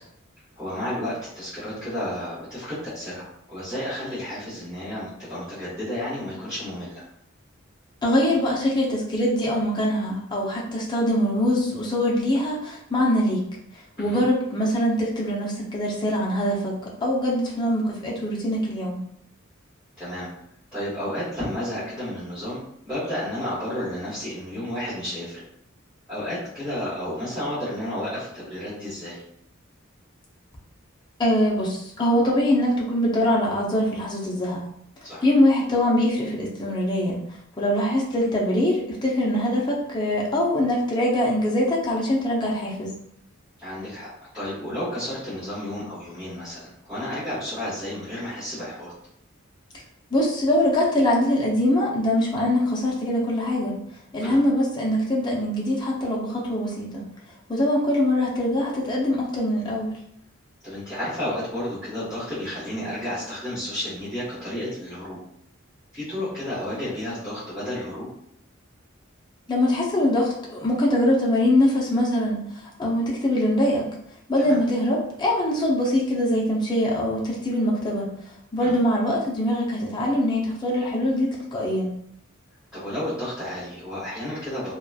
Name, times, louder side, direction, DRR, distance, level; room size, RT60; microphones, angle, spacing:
voice 1, 0.6-7.0 14.0-14.2 20.0-20.3 20.7-22.6 22.8-25.4 26.1-29.2 35.0-35.2 43.6-44.1 44.3-48.9 54.2-54.4 60.6-65.2 65.9-68.1 74.4-74.6 78.6-78.8 82.7-84.7, left 1 dB, 5° right, -15 dB, 1.3 m, -32 dB
voice 2, 8.0-13.5 14.0-16.7 17.0-19.0 31.2-34.6 35.2-37.2 37.6-42.9 50.1-53.7 54.1-57.0 57.5-59.9 69.5-73.8 74.3-78.1 78.5-81.9, left 1 dB, 20° left, -4 dB, 0.6 m, -23 dB
2.9 x 2.2 x 2.3 m, 0.71 s
head